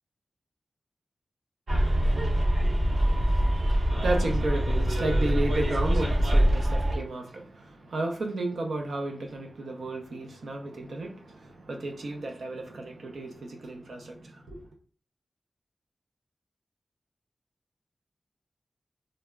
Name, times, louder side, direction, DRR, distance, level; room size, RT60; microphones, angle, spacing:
Bus, 1.7-7.0, equal, 65° right, 0.8 m, -24 dB
voice 1, 2.6-14.6, right 2 dB, 90° right, 0.6 m, -33 dB
2.2 x 2.0 x 3.4 m
wide cardioid pair, 90°, 0 cm